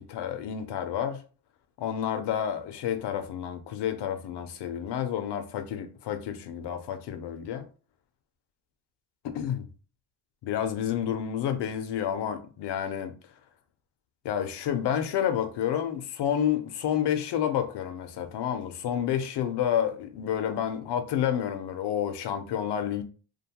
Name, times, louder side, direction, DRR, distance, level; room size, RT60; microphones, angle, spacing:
voice 1, 0.1-1.2 1.8-7.6 9.2-9.7 10.4-13.1 14.2-23.0, left 9 dB, 60° left, 0.5 m, -29 dB
2.5 x 2.2 x 2.8 m
cardioid pair, 140°, 47 cm